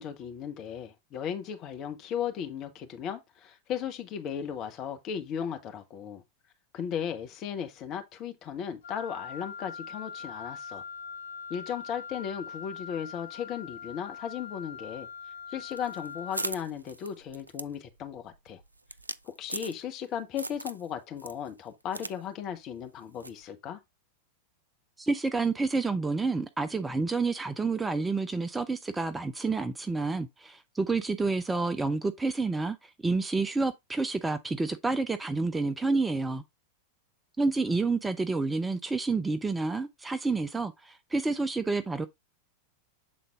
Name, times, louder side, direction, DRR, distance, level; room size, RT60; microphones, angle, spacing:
voice 1, 0.0-6.2 6.7-10.8 11.5-15.1 15.5-18.6 19.2-23.8, left 8 dB, 35° left, 1.2 m, -36 dB
Wind instrument woodwind instrument, 8.8-16.6, left 6 dB, 65° left, 0.9 m, -42 dB
sound 1, 15.7-20.1 20.4-20.9 21.2-22.2 22.4-22.5 23.2-23.4, right 2 dB, 85° right, 0.3 m, -39 dB
voice 2, 25.0-36.4 37.4-42.1, right 3 dB, 10° right, 0.5 m, -29 dB
7.7 x 3.9 x 3.5 m
figure-of-eight pair, 90°, 0 cm